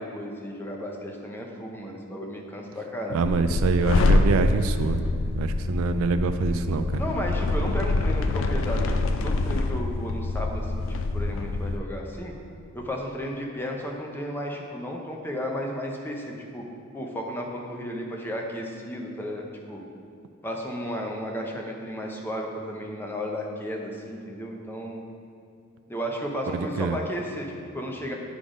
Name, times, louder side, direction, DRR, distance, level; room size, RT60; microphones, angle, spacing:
voice 1, 0.0-3.2 7.0-10.8 11.1-12.3 12.7-16.7 16.9-19.8 20.4-25.0 25.9-28.1, equal, 10° left, 0 dB, 0.6 m, -33 dB
voice 2, 3.1-5.0 5.3-7.0 26.8-27.0, right 4 dB, 75° right, 9 dB, 0.3 m, -25 dB
sound 1, 3.2-11.8, left 2 dB, 65° left, 0.4 m, -25 dB
8.3 x 3.8 x 4.9 m, 2.5 s
head